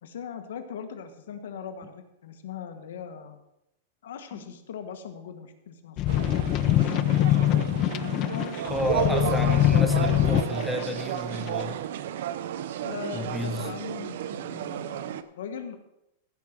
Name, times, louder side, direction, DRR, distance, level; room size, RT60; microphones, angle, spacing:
voice 1, 0.0-3.4 4.0-6.1 8.2-9.4 12.8-15.8, left 7 dB, 80° left, 7 dB, 1.5 m, -40 dB
sound 1, 6.0-10.8 11.5-11.6, left 14 dB, 35° left, 0.4 m, -23 dB
sound 2, 6.1-15.2, right 10 dB, 70° right, 0.7 m, -32 dB
voice 2, 8.7-11.8 13.1-13.7, left 2 dB, ahead, 4 dB, 1.0 m, -31 dB
15.0 x 5.2 x 6.0 m, 0.85 s
supercardioid pair, 150°, 0 cm